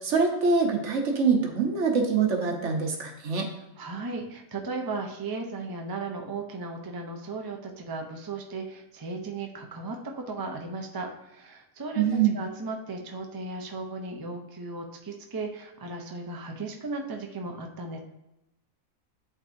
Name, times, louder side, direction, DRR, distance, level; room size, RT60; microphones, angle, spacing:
voice 1, 0.0-3.5 12.0-12.3, right 5 dB, 60° right, 2 dB, 1.2 m, -24 dB
voice 2, 3.8-12.0 12.3-18.0, right 3 dB, 35° right, 2 dB, 0.3 m, -36 dB
11.0 x 3.7 x 2.6 m, 0.90 s
omnidirectional pair, 1.5 m